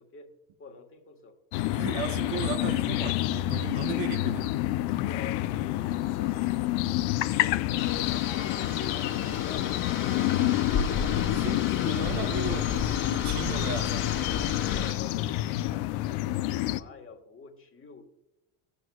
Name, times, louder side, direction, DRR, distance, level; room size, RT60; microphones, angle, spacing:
voice 1, 0.0-1.4 2.1-2.3 5.0-11.1 14.7-18.0, left 4 dB, 30° left, 1.5 m, -48 dB
sound 1, 1.5-16.8, left 15 dB, 80° left, 0.6 m, -28 dB
voice 2, 1.7-4.5 11.4-12.7 13.1-14.1, right 7 dB, 75° right, 1.0 m, -36 dB
sound 2, 7.8-14.9, left 6 dB, 50° left, 1.7 m, -33 dB
15.0 x 8.0 x 2.3 m
supercardioid pair, 85°, 41 cm